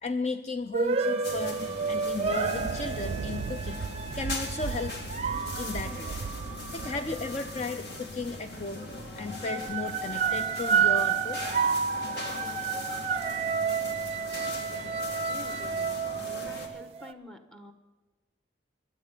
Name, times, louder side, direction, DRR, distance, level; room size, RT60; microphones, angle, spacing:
voice 1, 0.0-3.8 4.1-5.0 5.6-6.1 6.7-8.9 9.2-11.4, left 3 dB, 35° left, 9 dB, 0.4 m, -35 dB
sound 1, 0.7-7.7 8.5-8.8 9.2-17.1, right 6 dB, 30° right, 0.6 m, -31 dB
sound 2, 1.2-16.7, left 2 dB, 55° left, 2.2 m, -40 dB
Thunder, 2.1-8.7, right 5 dB, 80° right, 0.3 m, -38 dB
voice 2, 15.3-17.7, left 1 dB, 5° left, 7 dB, 1.2 m, -48 dB
23.0 x 8.3 x 5.5 m, 1.3 s
head